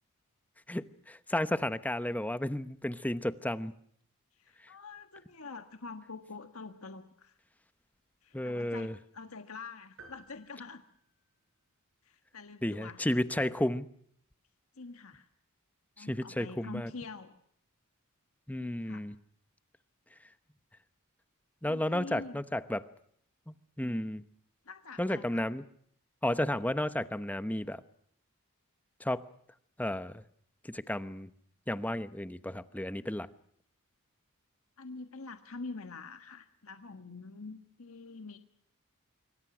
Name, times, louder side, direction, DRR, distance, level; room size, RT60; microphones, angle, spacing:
voice 1, 0.7-3.7 8.3-8.9 12.6-13.9 16.0-16.9 18.5-19.1 21.6-22.9 23.8-24.2 25.0-25.6 26.2-27.8 29.0-29.3 29.8-30.2 30.7-31.3 31.7-33.3, left 1 dB, 5° left, 12 dB, 0.9 m, -32 dB
voice 2, 4.4-7.4 8.2-10.8 12.0-13.0 14.7-15.3 16.0-17.4 18.5-19.0 21.7-22.4 24.6-25.4 34.8-38.4, left 4 dB, 70° left, 7 dB, 1.5 m, -45 dB
sound 1, 10.0-11.8, right 3 dB, 65° right, 7.1 m, -57 dB
25.5 x 24.5 x 6.1 m, 0.67 s
head